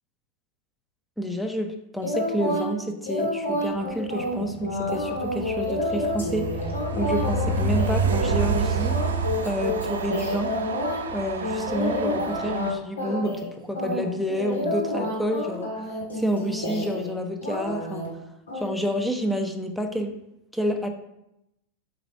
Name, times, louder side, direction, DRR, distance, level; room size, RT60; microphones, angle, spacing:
voice 1, 1.2-6.5 6.9-9.0 9.4-10.5 11.1-15.7 16.1-18.2 18.5-20.2 20.5-20.9, equal, 5° left, 5 dB, 0.8 m, -29 dB
sound 1, 2.0-2.7 3.1-11.0 11.4-12.7 13.0-13.5 13.8-17.1 17.4-18.1 18.5-18.7, left 1 dB, 70° left, 1.9 m, -29 dB
Train, 4.3-12.7, right 4 dB, 65° right, 0.8 m, -28 dB
7.9 x 4.2 x 4.6 m, 0.85 s
figure-of-eight pair, 90°, 0 cm